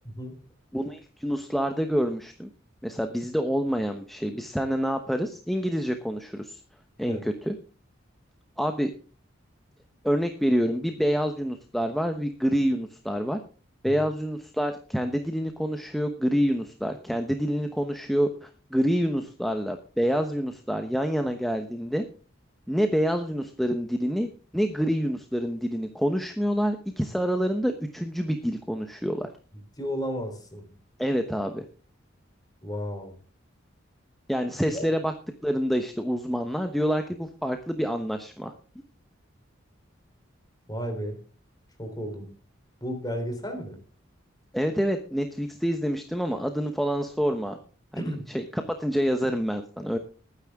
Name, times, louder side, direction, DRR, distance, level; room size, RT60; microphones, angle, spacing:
voice 1, 0.1-0.4 7.0-7.2 13.8-13.9 29.8-30.7 32.6-33.2 34.7-34.8 40.7-41.2 41.8-42.3 42.8-43.8 47.9-48.2, equal, 20° left, 6 dB, 3.5 m, -33 dB
voice 2, 0.7-2.5 2.8-6.6 7.0-7.5 8.6-8.9 10.0-13.4 13.8-22.0 22.7-29.3 31.0-31.6 34.3-35.1 35.4-38.5 44.5-47.6 47.9-50.0, equal, ahead, 6 dB, 1.0 m, -27 dB
20.5 x 9.7 x 3.6 m, 0.38 s
head